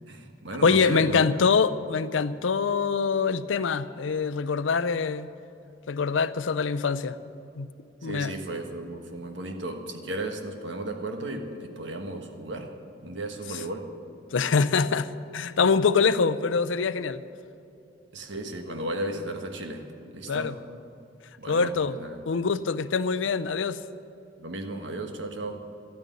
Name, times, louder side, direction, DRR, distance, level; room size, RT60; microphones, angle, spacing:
voice 1, 0.1-1.2 8.0-12.7 13.0-13.9 18.1-19.9 20.1-20.6 21.4-22.3 24.4-25.6, right 1 dB, 70° right, 5 dB, 1.4 m, -34 dB
voice 2, 0.6-5.3 5.9-7.2 7.6-7.7 8.0-8.3 14.3-17.2 20.3-20.5 21.5-21.9 22.3-23.8, left 5 dB, 85° left, 15 dB, 0.5 m, -24 dB
12.5 x 9.2 x 9.5 m, 2.7 s
head